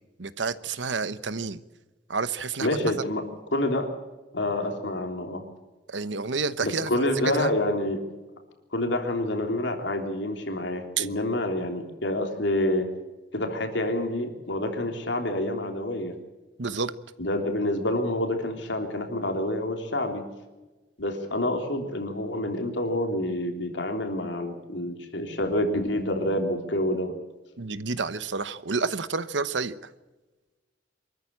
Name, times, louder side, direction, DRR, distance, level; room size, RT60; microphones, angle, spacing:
voice 1, 0.2-1.6 2.1-2.7 5.9-7.5 11.0-11.1 16.6-16.9 27.6-29.8, right 4 dB, 80° right, 14 dB, 1.0 m, -29 dB
voice 2, 2.6-3.2 3.5-3.9 4.3-5.4 6.6-8.0 8.7-12.9 13.3-16.1 17.2-20.2 21.0-27.1, left 1 dB, 80° left, 4 dB, 3.4 m, -27 dB
24.5 x 14.0 x 8.6 m, 1.2 s
head